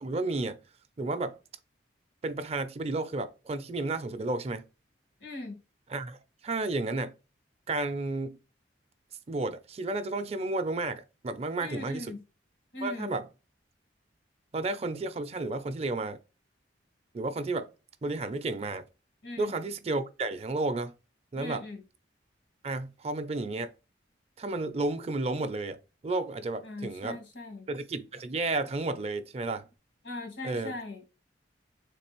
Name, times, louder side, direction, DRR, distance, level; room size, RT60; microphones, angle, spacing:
voice 1, 0.0-0.6 1.0-1.4 2.2-4.6 5.9-6.2 6.4-7.1 7.7-8.4 9.3-12.2 12.8-13.3 14.5-16.2 17.1-17.7 18.0-18.8 19.4-20.9 21.3-21.7 22.6-23.7 24.4-27.2 27.7-29.7 30.4-30.8, right 2 dB, 35° right, 0.4 m, -32 dB
voice 2, 5.2-5.6 11.6-12.2 12.7-13.1 19.2-19.5 21.3-21.8 26.6-27.7 30.0-31.0, left 2 dB, 85° left, 1.5 m, -39 dB
3.7 x 3.3 x 2.9 m
head